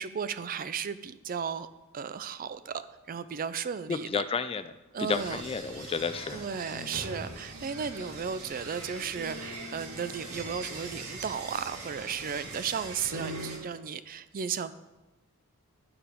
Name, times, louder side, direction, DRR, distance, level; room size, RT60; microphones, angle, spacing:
voice 1, 0.0-1.7 1.9-4.2 4.9-5.4 6.3-14.7, right 7 dB, 40° right, 13 dB, 0.4 m, -35 dB
voice 2, 3.9-4.7 5.0-6.4 6.7-7.0, left 5 dB, 25° left, 11 dB, 0.3 m, -32 dB
sound 1, 5.1-13.6, right 2 dB, 70° right, 1.9 m, -41 dB
11.5 x 4.7 x 5.0 m, 1.1 s
head